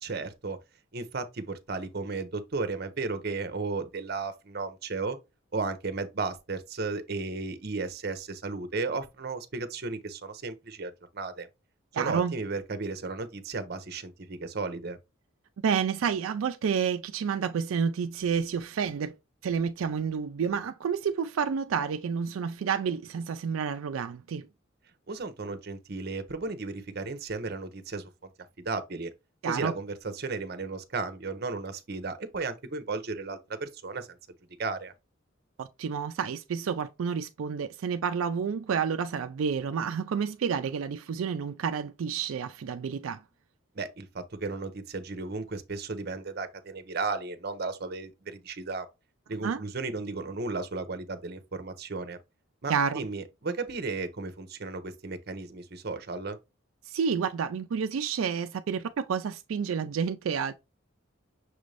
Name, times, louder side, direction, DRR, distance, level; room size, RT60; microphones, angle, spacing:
voice 1, 0.0-0.6 0.9-5.2 5.5-11.5 11.9-15.0 25.1-28.1 28.6-29.1 29.5-34.2 34.6-34.9 43.8-48.9 49.3-52.2 52.6-56.4, right 3 dB, 50° right, 0.7 m, -34 dB
voice 2, 11.9-12.3 15.6-19.1 19.4-24.5 29.4-29.7 35.6-43.2 49.4-49.6 52.7-53.0 56.9-60.5, right 6 dB, 85° right, 0.4 m, -29 dB
6.1 x 2.5 x 3.2 m
head